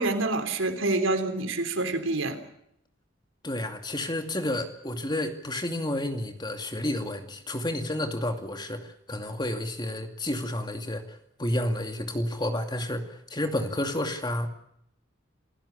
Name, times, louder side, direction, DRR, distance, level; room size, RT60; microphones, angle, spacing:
voice 1, 0.0-2.4, right 2 dB, 90° right, 8 dB, 3.6 m, -27 dB
voice 2, 3.4-14.5, left 1 dB, 20° left, 6 dB, 2.5 m, -31 dB
28.0 x 16.0 x 8.4 m, 0.75 s
head